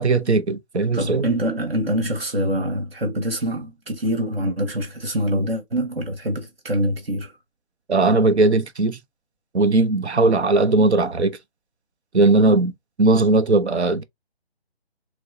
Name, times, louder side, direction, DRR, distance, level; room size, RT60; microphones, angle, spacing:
voice 1, 0.0-1.3 7.9-9.0 9.5-11.4 12.1-12.7 13.0-14.0, right 3 dB, 80° right, 0.8 m, -18 dB
voice 2, 0.9-7.3, equal, 60° right, 1.5 m, -25 dB
6.0 x 2.2 x 2.6 m
figure-of-eight pair, 155°, 33 cm